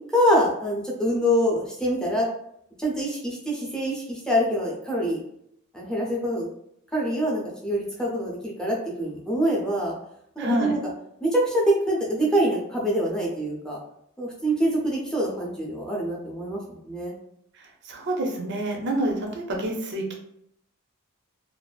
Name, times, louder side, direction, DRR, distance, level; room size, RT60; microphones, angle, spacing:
voice 1, 0.1-2.3 2.8-5.2 5.7-6.5 6.9-9.9 10.4-10.8 11.2-13.8 14.2-17.1, equal, 5° left, -4 dB, 0.6 m, -25 dB
voice 2, 10.4-10.7 17.5-20.1, right 1 dB, 55° right, 1 dB, 0.6 m, -28 dB
2.6 x 2.4 x 2.3 m, 0.73 s
head